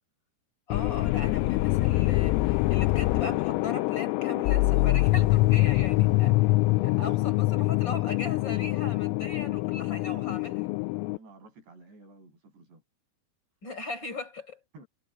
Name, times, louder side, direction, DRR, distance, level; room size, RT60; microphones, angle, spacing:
sound 1, 0.7-11.2, left 20 dB, 85° left, 3.2 m, -24 dB
voice 1, 0.7-6.3 6.8-10.7 13.6-14.6, left 3 dB, 20° left, 5.8 m, -39 dB
voice 2, 5.8-6.4 6.6-6.7 11.0-12.8 14.7-14.9, right 3 dB, 55° right, 10.0 m, -52 dB
omnidirectional pair, 6.0 m